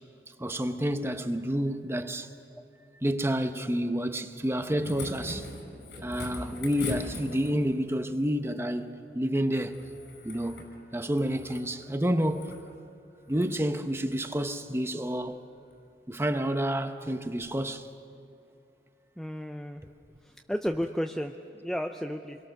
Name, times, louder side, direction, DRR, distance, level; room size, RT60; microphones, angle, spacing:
voice 1, 0.4-2.3 3.0-5.5 6.0-9.8 10.2-10.6 10.9-12.6 13.3-15.4 16.1-17.9, equal, 15° right, 0.9 m, -29 dB
sound 1, 4.4-7.8 9.7-10.7 11.1-11.7 12.2-12.6 13.3-13.5 14.1-14.3 15.7-15.8, left 2 dB, 75° left, 5.7 m, -41 dB
voice 2, 19.2-19.8 20.5-21.3 21.6-22.4, equal, ahead, 0.5 m, -32 dB
28.0 x 22.0 x 6.5 m
head